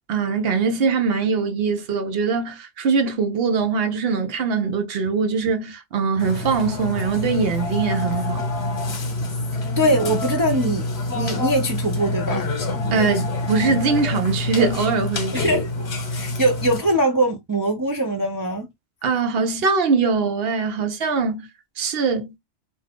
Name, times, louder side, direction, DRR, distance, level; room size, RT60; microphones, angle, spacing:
voice 1, 0.1-8.5 12.9-15.5 19.0-21.5 21.8-22.3, right 5 dB, 65° right, 0.7 m, -22 dB
Burping eructation, 6.2-16.8, left 2 dB, 60° left, 1.1 m, -26 dB
voice 2, 9.8-10.9 11.1-12.5 15.3-18.7, right 1 dB, 30° right, 0.3 m, -22 dB
2.5 x 2.4 x 3.3 m
omnidirectional pair, 1.2 m